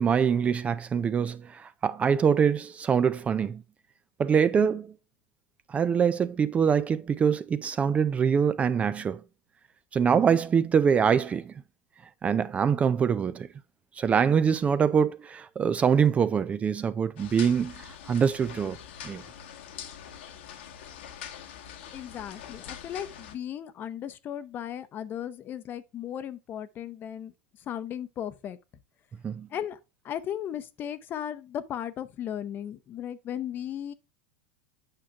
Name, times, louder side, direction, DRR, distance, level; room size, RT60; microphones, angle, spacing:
voice 1, 0.0-3.6 4.2-4.9 5.7-9.2 9.9-11.5 12.2-13.5 14.0-18.8 19.0-19.2 29.2-29.5, right 7 dB, 20° right, 0.4 m, -24 dB
sound 1, 17.2-23.3, left 9 dB, 75° left, 1.4 m, -44 dB
voice 2, 21.9-27.3 27.7-28.6 29.5-29.8 30.0-33.9, left 10 dB, 35° left, 0.8 m, -36 dB
8.9 x 5.6 x 2.4 m
supercardioid pair, 120°, 6 cm